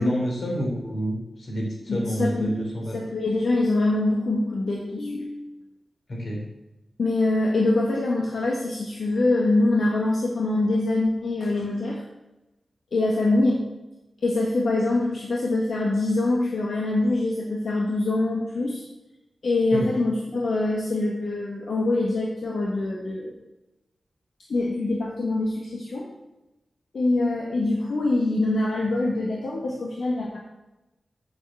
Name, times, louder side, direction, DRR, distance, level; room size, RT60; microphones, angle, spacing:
voice 1, 0.0-3.0 6.1-6.4 19.7-19.9, equal, 50° left, -1 dB, 3.3 m, -28 dB
voice 2, 1.9-2.5 2.9-5.6 7.0-12.0 12.9-13.6 14.2-18.8 19.4-23.3 24.5-26.1 26.9-30.4, left 2 dB, 70° left, -3 dB, 1.6 m, -24 dB
7.9 x 6.6 x 7.7 m, 0.99 s
wide cardioid pair, 170°, 0 cm